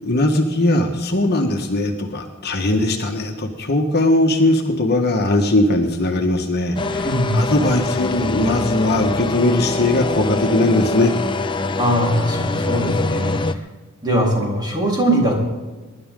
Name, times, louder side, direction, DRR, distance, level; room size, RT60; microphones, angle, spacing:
voice 1, 0.0-11.1, left 1 dB, 50° left, 3 dB, 1.6 m, -19 dB
sound 1, 6.8-13.5, left 3 dB, 25° left, 0.7 m, -24 dB
voice 2, 7.0-7.4 11.8-13.6 14.0-15.3, right 1 dB, 20° right, -2 dB, 4.4 m, -20 dB
23.5 x 11.0 x 3.9 m, 1.3 s
head